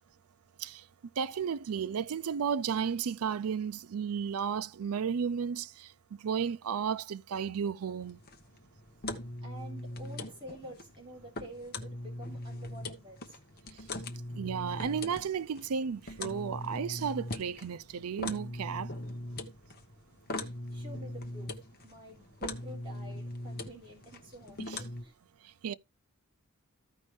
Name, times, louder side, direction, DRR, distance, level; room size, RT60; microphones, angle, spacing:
voice 1, 1.2-5.9 6.2-8.2 14.3-18.9 24.7-24.8 25.6-25.7, right 7 dB, 80° right, 0.4 m, -33 dB
sound 1, 8.0-25.0, left 2 dB, 45° left, 1.1 m, -41 dB
voice 2, 9.1-13.4 20.3-21.5 21.8-25.1, right 1 dB, 20° right, 3.4 m, -49 dB
14.5 x 5.3 x 3.2 m
head